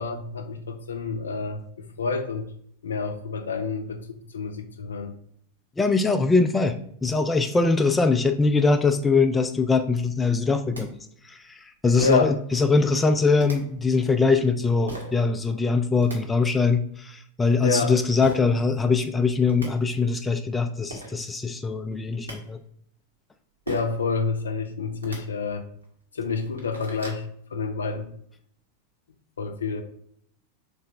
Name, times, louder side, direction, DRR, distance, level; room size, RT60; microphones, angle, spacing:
voice 1, 0.0-2.5 2.8-5.1 12.0-12.3 17.6-17.9 23.7-25.6 26.1-27.2 27.5-28.1 29.4-29.8, left 4 dB, 70° left, 6 dB, 0.6 m, -28 dB
voice 2, 5.8-10.9 11.3-22.6, left 4 dB, 10° left, 7 dB, 0.3 m, -22 dB
sound 1, 10.4-10.5 10.7-10.8 12.0-12.4 13.4-13.6 14.9-15.1 15.8-16.2 18.2-18.4 19.2-19.3 19.5-19.7 20.6-20.7 20.9-21.1 21.9-22.4 23.7-24.0 24.9-25.2 25.8-25.9 26.3-27.2, right 1 dB, 75° right, 1.2 m, -37 dB
3.8 x 3.2 x 4.5 m, 0.65 s
figure-of-eight pair, 90°, 0 cm